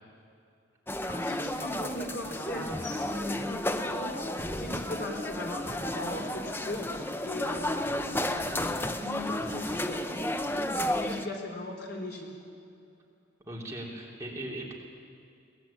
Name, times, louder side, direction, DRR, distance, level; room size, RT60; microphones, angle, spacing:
sound 1, 0.9-11.3, left 1 dB, 10° left, 0.7 m, -32 dB
voice 1, 1.0-3.6 3.9-10.4 10.7-12.3, left 1 dB, 55° left, 1 dB, 4.0 m, -39 dB
voice 2, 13.5-14.7, right 1 dB, 15° right, -3 dB, 3.2 m, -38 dB
22.5 x 19.0 x 8.8 m, 2.5 s
head